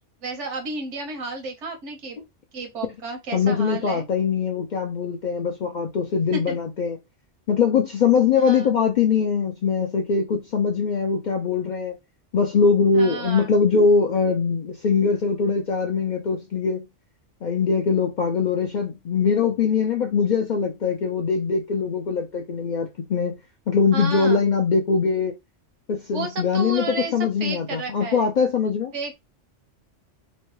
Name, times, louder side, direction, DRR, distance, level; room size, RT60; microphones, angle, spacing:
voice 1, 0.2-2.2 2.5-4.0 6.3-6.6 8.4-8.7 12.9-13.5 23.9-24.4 26.1-27.1 27.4-28.3 28.9-29.1, right 3 dB, 80° right, 1.2 m, -32 dB
voice 2, 3.3-7.0 7.5-12.0 12.3-16.8 17.4-23.4 23.7-25.3 25.9-29.1, left 5 dB, 60° left, 0.5 m, -22 dB
3.0 x 2.1 x 3.1 m
omnidirectional pair, 1.2 m